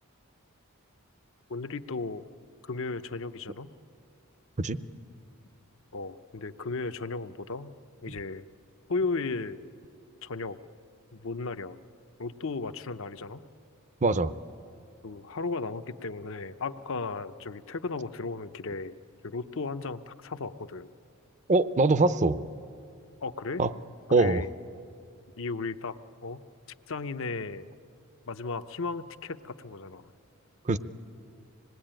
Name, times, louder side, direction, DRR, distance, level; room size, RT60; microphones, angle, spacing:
voice 1, 1.5-2.2 2.6-3.7 5.9-7.7 8.0-8.4 8.9-9.6 10.2-10.6 11.1-11.8 12.2-13.4 15.0-18.9 19.2-20.9 23.2-23.6 24.2-24.5 25.4-26.0 26.2-26.4 26.9-27.7 28.3-30.1, left 3 dB, 65° left, 10 dB, 0.8 m, -35 dB
voice 2, 14.0-14.3 21.5-22.4 23.6-23.7 24.1-24.4 30.7-30.8, right 3 dB, 35° right, 14 dB, 0.6 m, -23 dB
26.0 x 20.0 x 8.9 m, 2.4 s
head